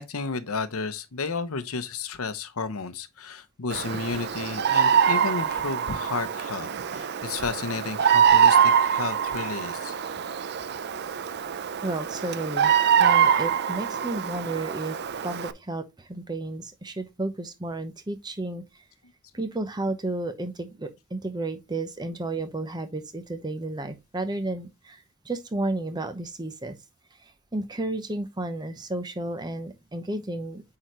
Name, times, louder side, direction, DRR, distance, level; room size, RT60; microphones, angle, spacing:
voice 1, 0.0-9.9, left 4 dB, 70° left, 0.8 m, -32 dB
Bird vocalization bird call bird song, 3.7-15.5, right 8 dB, 50° right, 0.5 m, -24 dB
voice 2, 11.8-12.7 13.0-15.0 15.2-18.6 19.3-26.7 27.5-30.6, right 2 dB, 20° right, 0.8 m, -32 dB
8.7 x 3.9 x 3.1 m
head